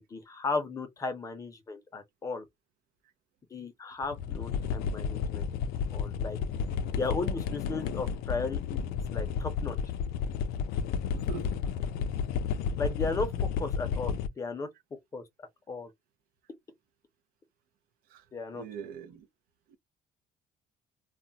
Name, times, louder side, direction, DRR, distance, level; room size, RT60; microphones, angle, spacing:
voice 1, 0.0-2.5 3.5-5.5 5.9-6.4 6.9-8.8 9.1-9.8 12.8-14.7 15.1-15.9 18.3-18.6, left 3 dB, 20° left, 0.6 m, -35 dB
sound 1, 4.0-14.3, left 6 dB, 80° left, 0.4 m, -32 dB
voice 2, 11.1-11.7 18.1-18.3 18.5-19.3 19.7-19.8, right 7 dB, 70° right, 0.5 m, -43 dB
2.3 x 2.0 x 3.8 m
cardioid pair, 180°, 16 cm